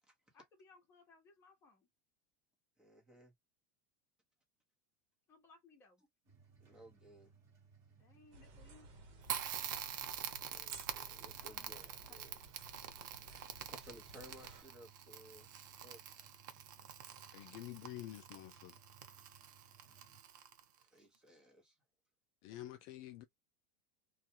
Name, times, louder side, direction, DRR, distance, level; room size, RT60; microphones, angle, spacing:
voice 1, 0.3-1.9 5.3-6.0 8.0-8.9 11.3-11.8, left 3 dB, 25° left, 1.0 m, -64 dB
voice 2, 2.8-3.3 6.6-7.3 10.4-12.4 13.7-16.0 20.8-21.8, equal, 10° right, 1.0 m, -59 dB
sound 1, 6.2-20.2, right 5 dB, 30° right, 1.2 m, -65 dB
sound 2, 8.3-14.6, right 3 dB, 50° right, 1.1 m, -57 dB
Crackle, 9.2-20.8, right 9 dB, 80° right, 0.7 m, -46 dB
voice 3, 17.3-18.7 22.4-23.2, left 14 dB, 45° left, 0.3 m, -48 dB
2.3 x 2.3 x 2.8 m
supercardioid pair, 150°, 10 cm